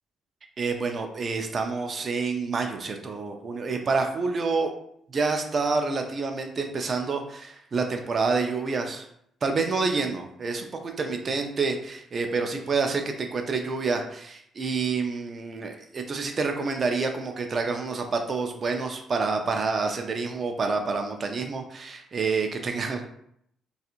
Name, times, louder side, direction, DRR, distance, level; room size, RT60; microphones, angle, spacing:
voice 1, 0.6-4.7 5.1-9.1 9.4-23.0, right 4 dB, 45° right, 4 dB, 0.4 m, -28 dB
2.8 x 2.4 x 2.4 m, 0.71 s
cardioid pair, 90°, 0 cm